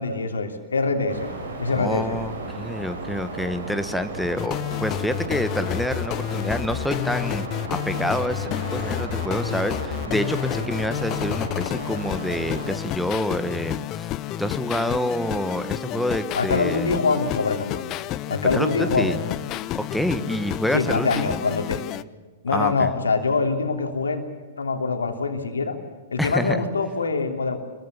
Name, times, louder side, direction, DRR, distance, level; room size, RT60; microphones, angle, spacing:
voice 1, 0.0-1.3 1.6-2.2 16.3-17.8 18.3-19.3 20.7-21.8 22.4-24.2 24.6-25.8 26.1-27.7, left 4 dB, 70° left, 5 dB, 3.1 m, -24 dB
sound 1, 1.1-12.7, right 2 dB, 65° right, 6.3 m, -34 dB
voice 2, 1.7-14.1 14.4-16.9 18.5-19.2 19.7-21.4 22.5-22.9 26.2-26.7, equal, ahead, 10 dB, 1.4 m, -27 dB
sound 2, 4.4-22.0, left 14 dB, 30° left, 0.7 m, -30 dB
26.0 x 22.0 x 7.2 m, 1.3 s
figure-of-eight pair, 105°, 0 cm